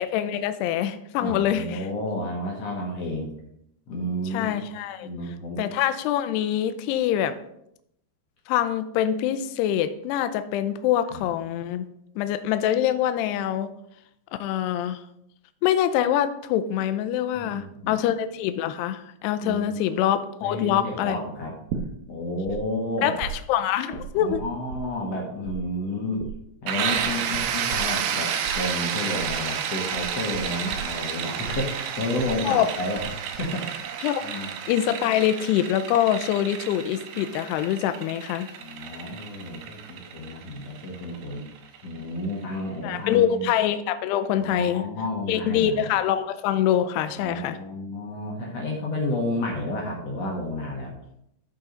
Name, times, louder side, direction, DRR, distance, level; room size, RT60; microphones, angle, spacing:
voice 1, 0.0-1.9 4.3-5.1 5.6-7.3 8.5-11.9 12.2-13.7 14.4-15.0 15.6-21.2 23.0-24.4 32.5-32.7 34.0-34.3 34.7-38.5 42.8-44.9 45.3-47.6, left 10 dB, 85° left, 10 dB, 2.6 m, -24 dB
voice 2, 1.2-3.3 3.9-4.6 5.0-5.6 11.1-11.2 17.3-18.0 19.4-19.8 20.4-21.5 22.1-23.1 24.1-26.2 26.6-33.8 34.2-34.5 38.5-41.4 41.8-43.5 44.4-45.9 47.2-51.0, left 1 dB, 65° left, -1 dB, 1.6 m, -31 dB
sound 1, 21.7-22.6 22.8-25.2 25.4-33.1 33.3-33.9, right 7 dB, 70° right, 2.5 m, -37 dB
sound 2, 26.7-42.3, right 8 dB, 90° right, 1.9 m, -31 dB
14.0 x 5.5 x 3.8 m, 0.76 s
omnidirectional pair, 5.0 m